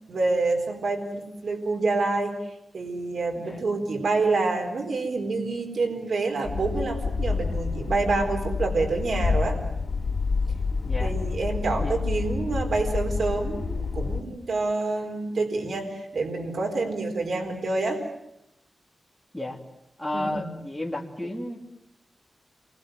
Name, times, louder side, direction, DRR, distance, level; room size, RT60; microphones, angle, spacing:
voice 1, 0.1-2.3 2.7-9.6 11.0-18.0 20.1-20.5, right 3 dB, 75° right, 3 dB, 4.4 m, -27 dB
sound 1, 6.4-14.2, left 4 dB, 60° left, 3.1 m, -28 dB
voice 2, 20.0-21.6, left 1 dB, 5° left, -2 dB, 3.1 m, -32 dB
29.0 x 23.0 x 7.7 m, 0.84 s
wide cardioid pair, 110°, 0 cm